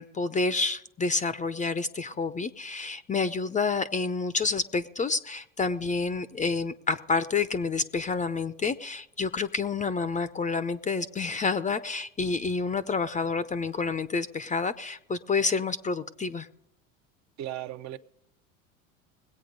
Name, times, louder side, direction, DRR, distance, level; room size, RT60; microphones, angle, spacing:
voice 1, 0.0-16.5, left 4 dB, 20° left, 0.7 m, -29 dB
voice 2, 17.4-18.0, right 12 dB, 45° right, 0.9 m, -36 dB
20.5 x 8.5 x 5.2 m
hypercardioid pair, 95°, 40 cm